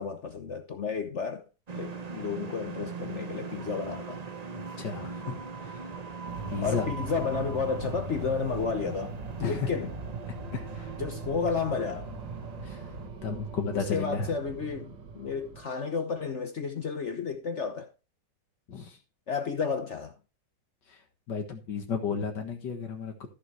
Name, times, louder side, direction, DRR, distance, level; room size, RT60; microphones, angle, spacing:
voice 1, 0.0-1.4 1.8-4.2 6.6-9.9 11.0-12.1 13.7-17.9 19.3-20.1, left 5 dB, 50° left, 1.0 m, -32 dB
sound 1, 1.7-13.1, right 5 dB, 35° right, 0.7 m, -41 dB
voice 2, 4.5-5.9 6.5-6.9 9.4-9.7 10.5-11.0 12.6-12.8 13.2-14.3 18.7-19.0 20.9-21.0 21.3-23.1, left 5 dB, 75° left, 2.1 m, -33 dB
sound 2, 6.3-15.6, right 4 dB, 80° right, 2.1 m, -40 dB
14.0 x 6.9 x 3.2 m
omnidirectional pair, 1.9 m